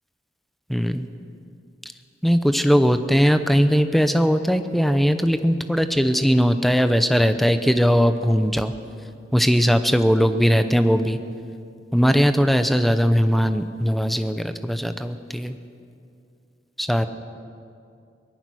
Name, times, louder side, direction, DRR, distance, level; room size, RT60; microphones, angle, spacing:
voice 1, 0.7-1.1 2.2-8.7 9.3-11.2 11.9-15.6 16.8-17.1, equal, ahead, 9 dB, 0.8 m, -19 dB
23.5 x 18.0 x 6.3 m, 2.5 s
head